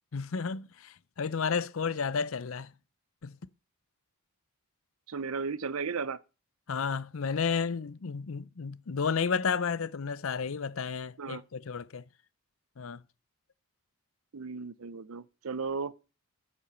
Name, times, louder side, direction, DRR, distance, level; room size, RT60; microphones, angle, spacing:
voice 1, 0.1-2.7 3.2-3.3 6.7-12.0 12.8-13.0, left 5 dB, 75° left, 0.6 m, -32 dB
voice 2, 5.1-6.2 11.2-11.4 14.3-15.9, right 5 dB, 80° right, 0.7 m, -35 dB
8.9 x 8.5 x 5.7 m
head